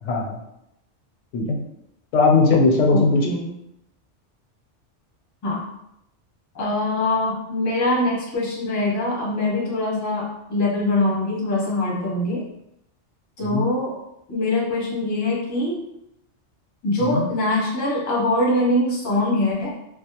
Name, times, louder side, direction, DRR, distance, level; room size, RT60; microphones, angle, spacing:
voice 1, 0.0-0.4 1.3-1.6 2.1-3.2 13.4-13.6 17.0-17.2, left 3 dB, 85° left, 0 dB, 0.9 m, -19 dB
voice 2, 2.9-3.5 5.4-5.6 6.5-12.4 13.4-14.0 14.3-15.8 16.8-19.7, left 2 dB, 25° left, -4 dB, 0.4 m, -23 dB
2.3 x 2.0 x 2.8 m, 0.82 s
omnidirectional pair, 1.2 m